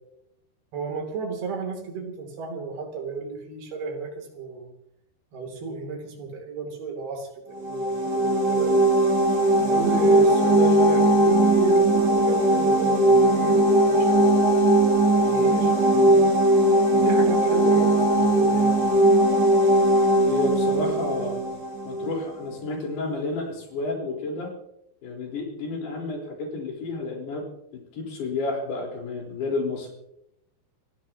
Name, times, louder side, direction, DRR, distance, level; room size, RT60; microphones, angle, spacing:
voice 1, 0.7-4.7 5.3-8.8 9.6-16.2 16.9-18.8, right 4 dB, 65° right, 2 dB, 4.8 m, -34 dB
sound 1, 7.5-22.2, right 1 dB, 35° right, 4.3 m, -19 dB
voice 2, 20.3-21.4 21.8-24.5 25.0-27.5 27.7-29.9, left 3 dB, 65° left, 0 dB, 6.2 m, -30 dB
29.5 x 16.0 x 2.9 m, 0.80 s
omnidirectional pair, 5.0 m